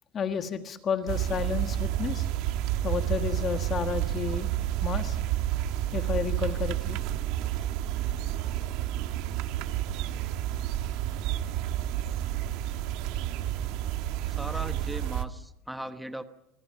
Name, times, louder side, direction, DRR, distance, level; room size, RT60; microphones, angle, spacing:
voice 1, 0.1-2.3 2.8-4.5 4.8-5.2 5.9-7.0 8.3-8.4, left 7 dB, 25° left, 8 dB, 1.5 m, -31 dB
sound 1, 1.1-15.2, right 12 dB, 50° right, 1.5 m, -30 dB
voice 2, 14.2-16.2, right 1 dB, ahead, 9 dB, 1.0 m, -39 dB
26.0 x 25.5 x 5.7 m, 0.87 s
cardioid pair, 170°, 0 cm